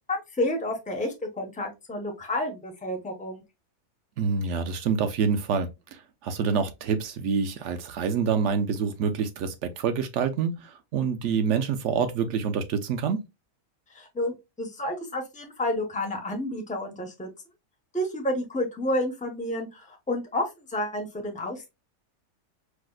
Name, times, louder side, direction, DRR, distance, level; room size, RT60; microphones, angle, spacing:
voice 1, 0.1-3.4 13.9-17.3 17.9-21.7, left 1 dB, 10° left, 0.4 m, -30 dB
voice 2, 4.2-13.3, right 6 dB, 65° right, 0.8 m, -27 dB
4.7 x 2.1 x 2.2 m
omnidirectional pair, 1.5 m